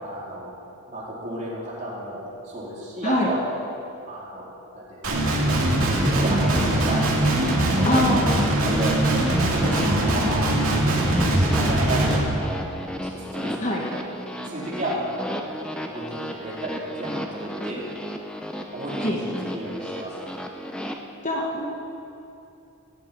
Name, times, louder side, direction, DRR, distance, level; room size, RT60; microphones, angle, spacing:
voice 1, 0.0-0.5 0.9-2.2 2.4-3.4 4.1-5.3 5.7-7.0 7.5-9.0 9.5-12.6 13.1-14.0 14.4-17.8 18.7-20.2, right 1 dB, 35° right, -7 dB, 3.9 m, -33 dB
Guitar, 5.0-12.2, right 1 dB, 75° right, 2.5 m, -21 dB
sound 1, 6.2-20.9, equal, 5° left, 0.7 m, -34 dB
voice 2, 7.8-8.4 13.6-13.8 19.0-19.2 21.2-21.7, left 1 dB, 35° left, -1 dB, 1.4 m, -23 dB
17.0 x 7.0 x 8.6 m, 2.7 s
head